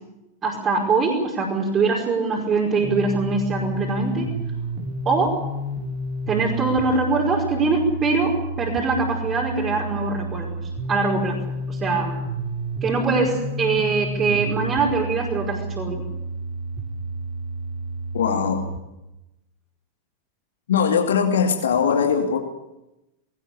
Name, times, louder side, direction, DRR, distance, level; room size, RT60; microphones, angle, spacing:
voice 1, 0.4-4.3 5.0-5.4 6.3-10.6 10.9-11.4 11.7-12.1 12.8-16.0, right 4 dB, 25° right, -4 dB, 5.1 m, -23 dB
sound 1, 2.8-18.8, right 1 dB, 40° right, 3.2 m, -30 dB
voice 2, 18.1-18.7 20.7-22.4, left 6 dB, 65° left, 4 dB, 2.4 m, -20 dB
21.5 x 18.5 x 8.5 m, 0.95 s
figure-of-eight pair, 90°, 0 cm